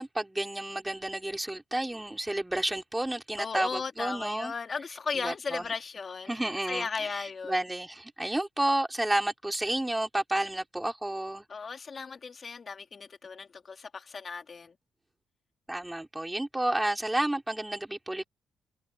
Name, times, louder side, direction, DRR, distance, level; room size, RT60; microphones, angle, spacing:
voice 1, 0.0-4.5 5.1-5.6 6.3-11.4 15.7-18.3, right 1 dB, 10° right, 4.9 m, -31 dB
voice 2, 3.4-6.3 6.7-7.6 11.5-14.7 16.6-16.7, left 5 dB, 40° left, 3.4 m, -36 dB
cardioid pair, 100°, 0 cm